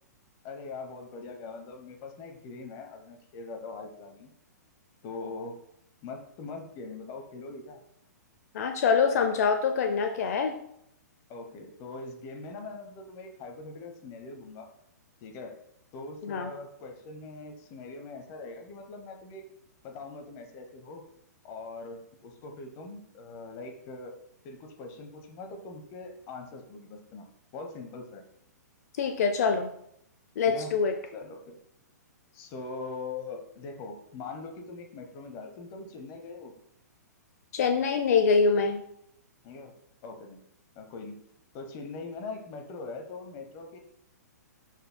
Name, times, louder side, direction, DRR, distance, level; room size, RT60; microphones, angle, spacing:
voice 1, 0.4-4.3 5.0-5.6 6.0-7.8 11.3-14.7 15.2-15.6 15.9-19.4 19.8-21.0 21.4-24.2 24.4-27.2 27.5-28.2 30.5-30.8 31.1-31.6 32.3-36.5 39.4-39.7 40.0-40.4 40.7-41.2 41.5-43.8, left 3 dB, 35° left, 4 dB, 0.9 m, -42 dB
voice 2, 8.5-10.5 16.2-16.5 29.0-29.7 30.4-30.9 37.5-38.8, left 5 dB, 60° left, 6 dB, 0.6 m, -24 dB
11.0 x 4.5 x 2.2 m, 0.74 s
hypercardioid pair, 130°, 9 cm